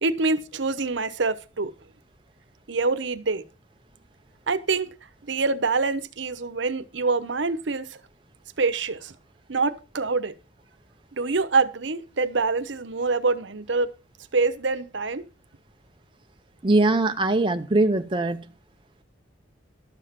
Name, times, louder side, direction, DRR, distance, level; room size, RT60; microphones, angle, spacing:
voice 1, 0.0-1.7 2.7-3.4 4.5-4.9 5.3-8.0 8.6-9.1 9.5-10.3 11.1-13.9 14.3-15.3, right 4 dB, 75° right, 0.9 m, -25 dB
voice 2, 16.6-18.4, right 2 dB, 25° right, 0.6 m, -21 dB
12.5 x 7.3 x 5.8 m
head